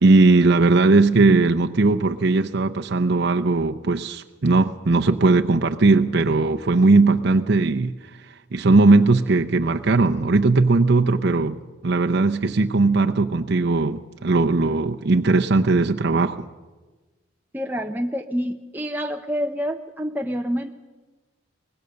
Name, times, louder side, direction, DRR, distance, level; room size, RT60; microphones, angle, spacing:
voice 1, 0.0-7.9 8.5-11.6 11.8-16.5, right 3 dB, 55° right, 0.7 m, -18 dB
voice 2, 17.5-20.7, equal, 10° right, 0.6 m, -27 dB
23.5 x 19.0 x 6.5 m
head